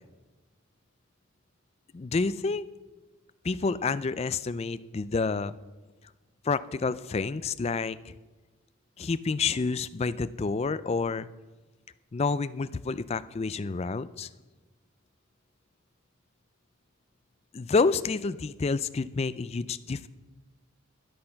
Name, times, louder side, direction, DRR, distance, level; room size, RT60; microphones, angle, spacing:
voice 1, 1.9-2.7 3.4-5.5 6.4-8.2 9.0-11.3 12.1-14.3 17.5-20.1, left 4 dB, 30° left, 15 dB, 0.3 m, -29 dB
12.5 x 9.8 x 5.8 m, 1.2 s
head